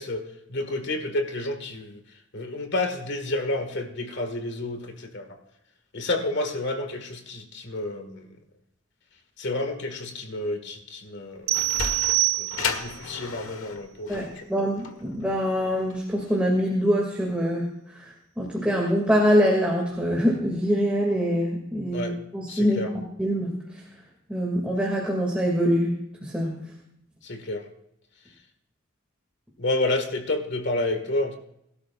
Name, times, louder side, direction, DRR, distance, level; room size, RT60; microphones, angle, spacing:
voice 1, 0.0-2.0 2.3-5.3 5.9-8.3 9.4-11.6 12.4-14.4 21.9-22.1 22.5-22.9 27.2-27.7 29.6-31.4, left 2 dB, 60° left, 6 dB, 1.9 m, -30 dB
Sliding door, 11.2-16.4, left 5 dB, 90° left, 1.5 m, -34 dB
sound 1, 11.5-13.0, right 24 dB, 75° right, 0.6 m, -25 dB
voice 2, 14.1-17.7 18.0-18.1 18.4-22.8 23.2-23.5 24.3-26.6, equal, 5° right, -2 dB, 2.4 m, -24 dB
22.5 x 12.5 x 2.5 m, 0.77 s
head